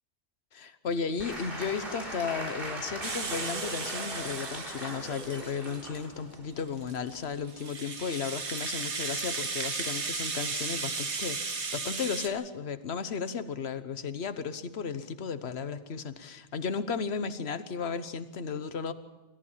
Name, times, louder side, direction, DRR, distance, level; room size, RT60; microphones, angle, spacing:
voice 1, 0.5-18.9, left 6 dB, 65° left, 11 dB, 1.3 m, -34 dB
Applause / Crowd, 1.2-7.5, right 1 dB, 50° right, 4.3 m, -40 dB
Rattle (instrument), 3.0-6.1 6.6-12.3, right 4 dB, 70° right, 1.8 m, -35 dB
26.5 x 14.0 x 7.3 m, 1.2 s
omnidirectional pair, 1.2 m